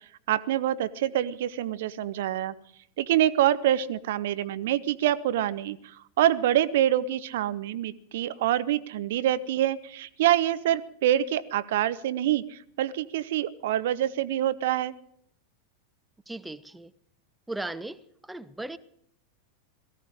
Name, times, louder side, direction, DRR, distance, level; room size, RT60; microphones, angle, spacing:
voice 1, 0.3-2.5 3.0-15.0, right 12 dB, 55° right, 0.5 m, -26 dB
voice 2, 16.3-16.9 17.5-18.8, right 2 dB, 5° right, 0.6 m, -37 dB
17.5 x 14.5 x 5.0 m
figure-of-eight pair, 90°, 0 cm